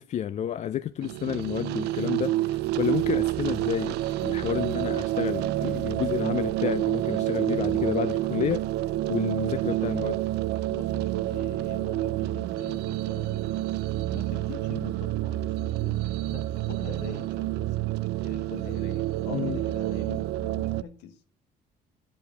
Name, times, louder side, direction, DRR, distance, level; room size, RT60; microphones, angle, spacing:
voice 1, 0.0-8.6 9.1-10.2 19.3-19.6, left 10 dB, 45° left, 0.4 m, -30 dB
sound 1, 1.0-20.8, right 15 dB, 80° right, 0.4 m, -28 dB
voice 2, 7.2-7.8 10.7-13.7 14.1-17.9 18.2-21.2, left 8 dB, 90° left, 1.2 m, -44 dB
9.6 x 5.0 x 6.5 m
cardioid pair, 110°, 17 cm